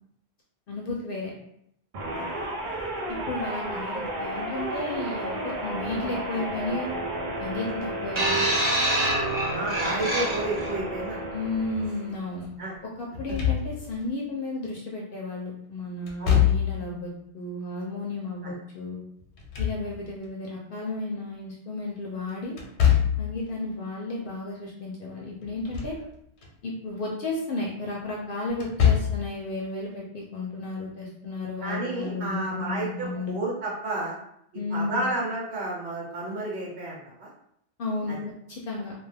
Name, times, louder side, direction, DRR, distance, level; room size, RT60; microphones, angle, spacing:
voice 1, 0.7-1.3 3.1-6.9 7.4-8.5 11.3-12.5 13.0-19.0 19.6-22.5 23.2-25.9 26.6-33.4 34.5-35.1 37.8-38.2 38.5-38.9, left 2 dB, 60° left, -2 dB, 0.7 m, -33 dB
sound 1, 1.9-12.3, right 1 dB, 55° right, 0.6 m, -33 dB
sound 2, 8.2-10.7 11.6-11.8, right 1 dB, 30° right, 0.8 m, -26 dB
voice 2, 9.5-11.2 12.6-12.7 16.2-16.4 18.4-18.5 31.6-34.2 34.7-37.3 38.1-38.2, right 2 dB, 85° right, -4 dB, 1.2 m, -31 dB
Slam / Thump thud, 13.1-14.1 16.1-17.0 19.2-20.3 22.6-23.4 25.4-26.0 26.4-26.5 28.5-29.3, left 9 dB, 90° left, 0.9 m, -24 dB
2.4 x 2.2 x 3.3 m, 0.73 s
omnidirectional pair, 1.1 m